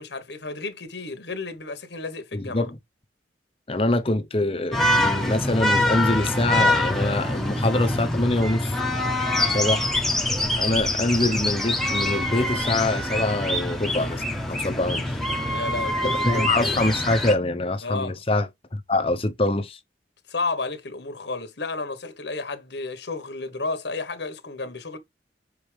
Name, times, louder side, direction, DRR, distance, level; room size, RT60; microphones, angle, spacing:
voice 1, 0.0-2.7 15.5-16.7 17.8-18.2 20.3-25.0, left 3 dB, 70° left, 1.3 m, -32 dB
voice 2, 2.3-2.7 3.7-8.8 9.5-9.9 10.5-15.2 16.2-19.8, left 2 dB, 30° left, 0.9 m, -24 dB
sound 1, 4.7-17.3, left 1 dB, ahead, 1.1 m, -25 dB
6.6 x 4.9 x 3.4 m
head